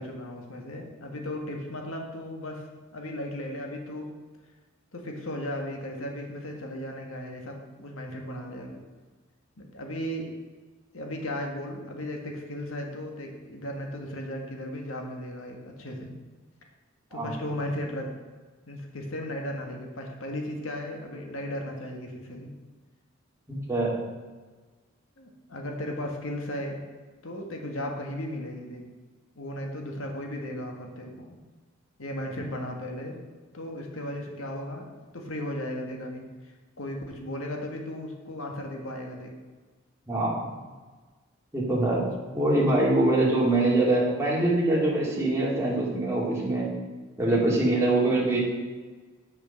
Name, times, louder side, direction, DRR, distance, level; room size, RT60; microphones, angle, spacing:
voice 1, 0.0-2.6 2.9-4.1 4.9-8.8 9.6-10.3 10.9-16.2 17.1-18.1 18.7-22.5 25.2-26.8 27.2-28.8 29.4-31.4 32.0-33.2 33.5-39.3, left 1 dB, 90° left, 2 dB, 1.7 m, -36 dB
voice 2, 23.5-24.0 40.1-40.5 41.5-42.1 42.3-46.7 47.2-48.4, right 2 dB, 15° right, -5 dB, 2.3 m, -24 dB
8.2 x 6.4 x 6.6 m, 1.3 s
head